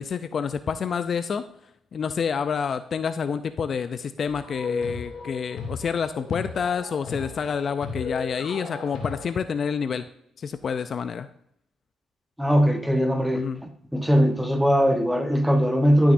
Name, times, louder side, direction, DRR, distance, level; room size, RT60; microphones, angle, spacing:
voice 1, 0.0-1.4 1.9-10.1 10.4-11.3 13.3-13.6, left 6 dB, 50° left, 0.4 m, -28 dB
sound 1, 4.3-9.2, left 4 dB, 75° left, 2.7 m, -35 dB
voice 2, 12.4-13.5 13.9-16.1, equal, 5° right, 1.0 m, -20 dB
12.5 x 6.3 x 2.6 m
cardioid pair, 90°, 0 cm